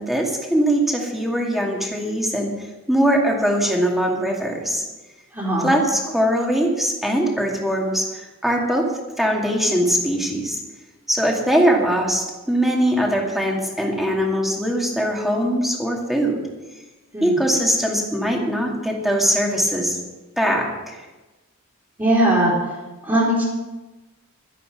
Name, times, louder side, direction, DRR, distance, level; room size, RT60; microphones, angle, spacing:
voice 1, 0.0-4.9 5.6-8.9 9.2-10.6 11.1-16.4 17.2-20.0 20.4-21.0, equal, ahead, -1 dB, 2.3 m, -21 dB
voice 2, 5.3-5.7 17.1-17.3 22.0-22.5 23.0-23.4, right 1 dB, 20° right, -9 dB, 3.7 m, -19 dB
12.5 x 11.0 x 6.0 m, 1.1 s
head